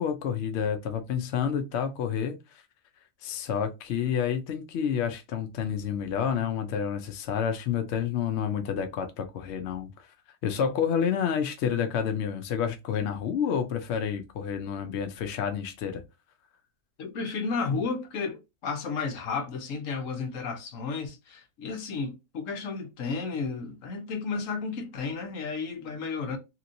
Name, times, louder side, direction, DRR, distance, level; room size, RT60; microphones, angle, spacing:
voice 1, 0.0-2.6 3.2-9.9 10.4-16.0, left 8 dB, 75° left, 0.6 m, -29 dB
voice 2, 17.0-26.4, left 4 dB, 60° left, 1.0 m, -33 dB
3.0 x 2.9 x 2.5 m
omnidirectional pair, 1.8 m